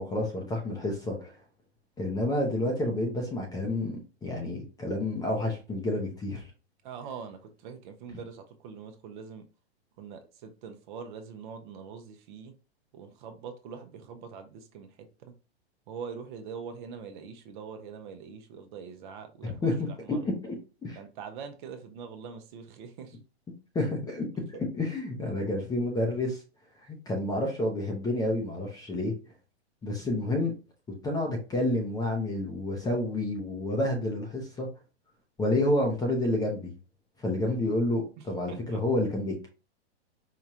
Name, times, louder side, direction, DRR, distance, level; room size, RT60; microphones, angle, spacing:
voice 1, 0.0-1.3 2.0-6.4 19.4-20.6 20.8-21.0 23.7-26.4 26.9-29.1 29.8-30.5 31.0-34.7 35.4-36.7 37.2-39.5, left 1 dB, 10° left, 1 dB, 0.6 m, -29 dB
voice 2, 6.8-9.4 10.0-12.5 12.9-15.3 15.9-20.2 20.9-23.2 38.2-38.8, right 6 dB, 45° right, 6 dB, 0.8 m, -43 dB
4.7 x 2.3 x 2.8 m, 0.33 s
hypercardioid pair, 135°, 33 cm